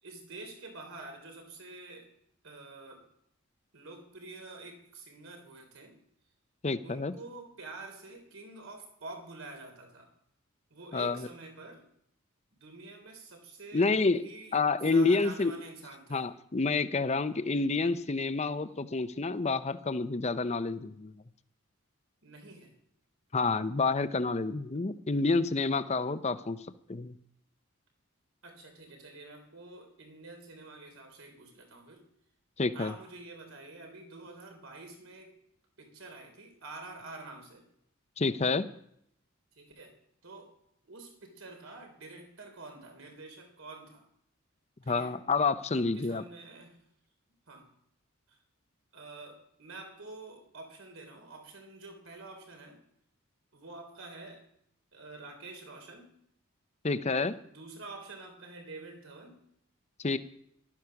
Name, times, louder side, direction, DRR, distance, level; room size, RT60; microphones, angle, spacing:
voice 1, 0.0-2.1 2.4-3.1 3.7-6.0 6.8-10.1 10.7-11.9 12.6-16.3 22.2-22.8 28.4-32.1 32.7-35.4 35.8-37.7 39.5-40.0 40.2-40.6 40.8-44.1 44.8-45.2 45.7-46.8 47.5-47.7 48.3-48.4 48.9-52.8 53.5-54.5 54.9-56.2 57.4-59.4, right 3 dB, 75° right, 3 dB, 3.6 m, -48 dB
voice 2, 6.6-7.1 10.9-11.2 13.7-14.2 14.5-15.5 16.1-21.1 23.3-26.6 26.9-27.1 32.6-32.9 38.2-38.7 44.9-46.2 56.8-57.4 60.0-60.2, left 3 dB, 30° left, 12 dB, 0.7 m, -28 dB
14.5 x 12.5 x 5.9 m, 0.73 s
head